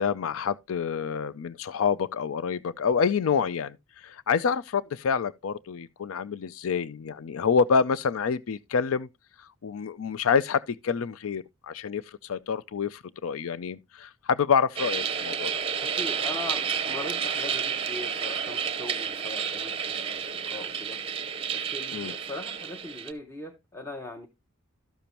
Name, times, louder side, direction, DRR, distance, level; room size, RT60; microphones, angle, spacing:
voice 1, 0.0-3.8 4.0-9.1 9.6-15.5 21.9-22.1, left 6 dB, 75° left, 0.4 m, -27 dB
sound 1, 14.8-23.1, right 7 dB, 25° right, 0.7 m, -31 dB
voice 2, 15.8-21.0 21.5-24.3, left 1 dB, 15° left, 0.8 m, -40 dB
12.5 x 6.9 x 2.9 m
head